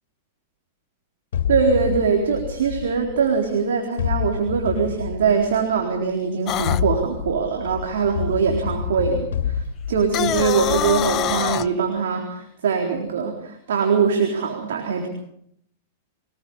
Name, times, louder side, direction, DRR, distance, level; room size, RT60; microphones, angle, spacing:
sound 1, 1.3-3.5 4.0-5.8 6.5-11.6, left 8 dB, 70° left, 2.6 m, -28 dB
voice 1, 1.5-15.1, right 5 dB, 75° right, 2 dB, 3.9 m, -22 dB
sound 2, 6.5-6.8 10.0-11.7, left 13 dB, 40° left, 0.8 m, -24 dB
24.0 x 20.5 x 5.6 m, 0.72 s
hypercardioid pair, 105°, 0 cm